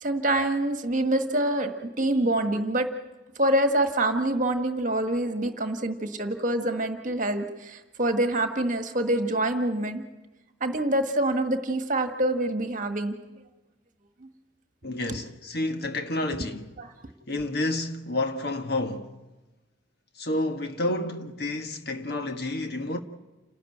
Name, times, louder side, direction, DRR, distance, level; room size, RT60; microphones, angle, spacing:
voice 1, 0.0-2.9 3.4-10.0 10.6-13.2 16.8-16.9, right 1 dB, 40° right, 1.6 m, -26 dB
voice 2, 14.8-16.7 17.3-19.2 20.2-23.0, left 2 dB, 50° left, 1.5 m, -30 dB
28.5 x 13.0 x 9.2 m
head